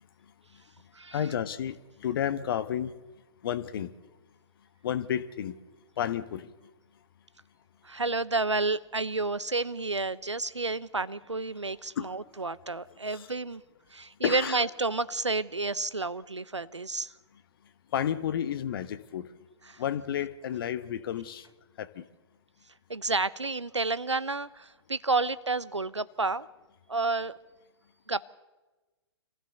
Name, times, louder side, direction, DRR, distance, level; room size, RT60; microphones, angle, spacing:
voice 1, 1.1-2.9 3.4-3.9 4.8-5.6 6.0-6.5 12.0-12.2 13.0-13.3 14.2-14.6 17.9-19.3 19.8-21.5 21.8-22.1, left 9 dB, 50° left, 14 dB, 1.2 m, -31 dB
voice 2, 7.8-13.6 13.9-17.1 19.7-19.8 22.9-26.5 26.9-27.3 28.1-28.2, right 3 dB, 90° right, 18 dB, 0.8 m, -30 dB
25.5 x 15.5 x 6.8 m, 1.2 s
figure-of-eight pair, 115°, 15 cm